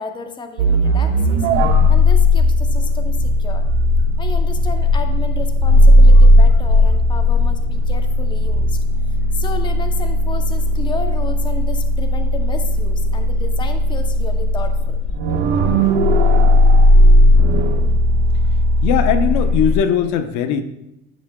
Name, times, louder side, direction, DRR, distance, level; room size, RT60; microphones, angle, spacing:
voice 1, 0.0-1.5 1.9-3.7 4.2-8.8 9.3-15.0, left 4 dB, 15° left, 7 dB, 0.6 m, -32 dB
sound 1, 0.6-19.8, left 1 dB, 85° right, 1.2 m, -15 dB
voice 2, 18.8-20.6, left 7 dB, 65° left, 9 dB, 0.8 m, -19 dB
12.5 x 5.8 x 2.2 m, 0.83 s
supercardioid pair, 100°, 32 cm